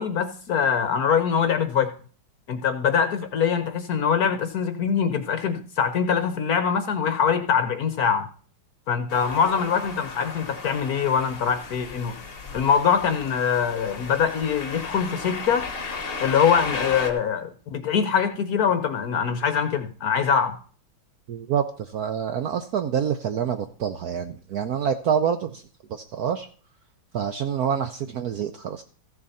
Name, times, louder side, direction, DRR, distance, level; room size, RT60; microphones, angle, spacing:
voice 1, 0.0-1.9 2.5-8.3 8.9-12.2 12.5-15.7 16.2-20.6, left 7 dB, 60° left, 9 dB, 1.1 m, -23 dB
sound 1, 9.1-17.1, left 4 dB, 35° left, 1.1 m, -35 dB
voice 2, 21.3-25.6 25.9-26.5 27.1-28.8, right 8 dB, 65° right, 9 dB, 0.9 m, -27 dB
15.0 x 7.0 x 4.1 m, 0.42 s
omnidirectional pair, 2.2 m